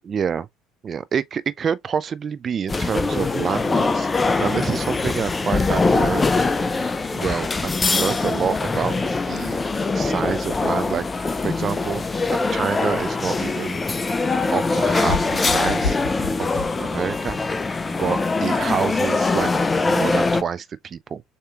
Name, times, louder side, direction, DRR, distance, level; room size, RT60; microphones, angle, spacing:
voice 1, 0.0-0.5 0.8-6.5 7.1-9.6 9.9-12.0 12.5-13.8 14.5-16.0 16.4-17.4 18.0-19.5 19.8-21.2, right 7 dB, 40° right, 0.5 m, -27 dB
sound 1, 2.7-20.4, left 3 dB, 20° left, 0.5 m, -22 dB
sound 2, 15.0-17.4, left 4 dB, 65° left, 1.2 m, -30 dB
6.6 x 2.9 x 2.4 m
hypercardioid pair, 60°, 0 cm